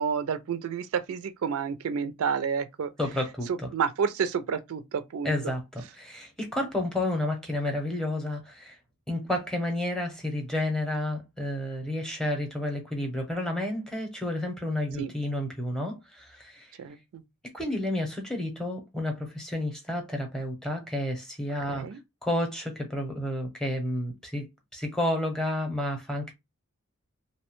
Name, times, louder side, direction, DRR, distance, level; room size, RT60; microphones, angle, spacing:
voice 1, 0.0-2.9 3.5-5.5 15.0-15.1 16.8-17.2 21.7-22.0, right 6 dB, 70° right, 0.4 m, -30 dB
voice 2, 3.0-3.7 5.2-8.8 9.1-16.7 17.5-21.9 22.2-24.5 24.7-26.3, left 1 dB, 5° left, 0.6 m, -31 dB
2.7 x 2.1 x 3.0 m
head